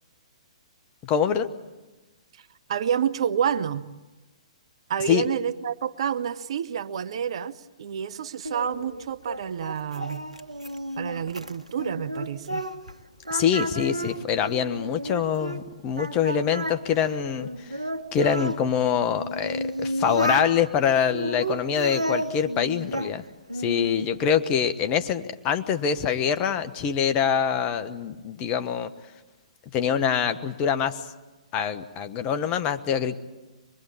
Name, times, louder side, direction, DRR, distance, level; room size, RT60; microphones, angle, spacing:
voice 1, 1.0-1.5 5.1-5.2 13.3-17.8 18.1-23.2 23.5-28.9 29.7-31.1 31.5-33.2, left 7 dB, 30° left, 9 dB, 1.3 m, -25 dB
voice 2, 2.4-3.9 4.9-10.2 11.0-12.7, right 8 dB, 55° right, 13 dB, 0.9 m, -29 dB
Singing, 8.4-13.0 13.2-15.6 16.0-18.6 19.2-20.5 21.1-23.1 23.5-24.1, right 1 dB, 90° right, 1.5 m, -32 dB
24.0 x 21.5 x 8.5 m, 1.2 s
figure-of-eight pair, 120°, 4 cm